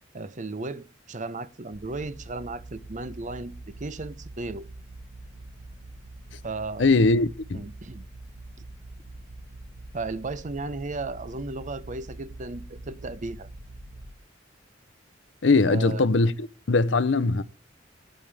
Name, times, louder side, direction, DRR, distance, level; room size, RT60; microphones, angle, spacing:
voice 1, 0.1-3.5 3.8-4.6 6.4-6.9 7.5-8.0 9.9-13.5 15.6-16.1, right 3 dB, 40° right, 0.8 m, -35 dB
sound 1, 1.7-14.1, right 2 dB, 90° right, 1.2 m, -44 dB
voice 2, 6.8-7.6 15.4-17.4, left 3 dB, 70° left, 0.7 m, -21 dB
19.5 x 9.2 x 3.4 m
head